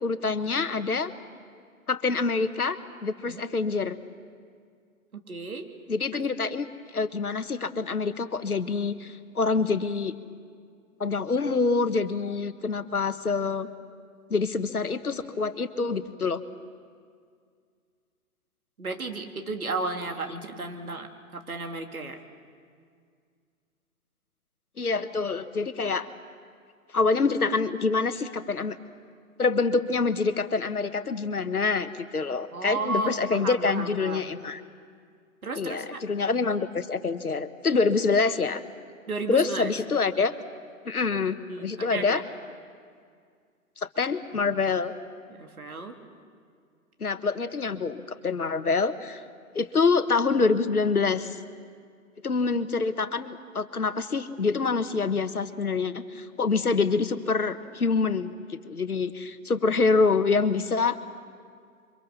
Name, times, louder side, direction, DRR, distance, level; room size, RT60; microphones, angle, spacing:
voice 1, 0.0-1.1 1.9-4.0 5.9-6.7 6.9-10.1 11.0-13.7 14.3-16.4 24.8-26.1 26.9-28.8 29.4-34.6 35.5-38.6 39.3-40.3 40.8-42.2 43.8-44.9 47.0-49.2 49.5-51.4 52.2-61.0, left 4 dB, 85° left, 11 dB, 1.5 m, -26 dB
voice 2, 5.3-5.7 18.8-21.1 21.3-22.2 32.5-34.3 35.4-36.0 39.1-39.7 41.5-42.2 45.3-45.9, right 3 dB, 75° right, 4 dB, 3.0 m, -33 dB
28.5 x 24.5 x 6.9 m, 2.1 s
figure-of-eight pair, 120°, 43 cm